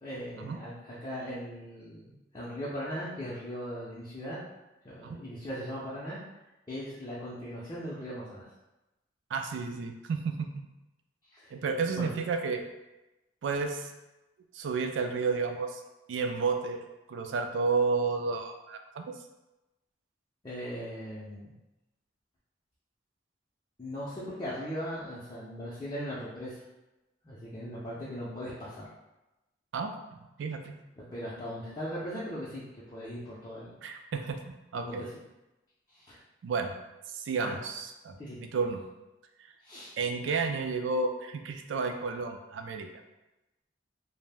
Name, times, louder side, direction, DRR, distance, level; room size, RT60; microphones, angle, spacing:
voice 1, 0.0-4.4 4.8-6.2 6.7-8.4 11.3-11.5 12.0-12.1 20.4-21.5 23.8-26.6 27.2-28.9 31.0-32.6 32.9-33.8 34.7-35.1 35.9-36.2 37.4-37.6 38.2-38.4 39.6-39.9, equal, 20° left, -9 dB, 0.5 m, -39 dB
voice 2, 9.3-10.7 11.5-12.6 13.4-13.9 14.5-15.8 16.1-16.8 17.1-19.1 29.7-30.8 33.8-35.1 36.4-36.8 37.1-38.2 38.5-38.8 39.4-39.5 40.0-42.9, right 4 dB, 85° right, 5 dB, 0.3 m, -31 dB
2.4 x 2.0 x 3.4 m, 0.99 s
head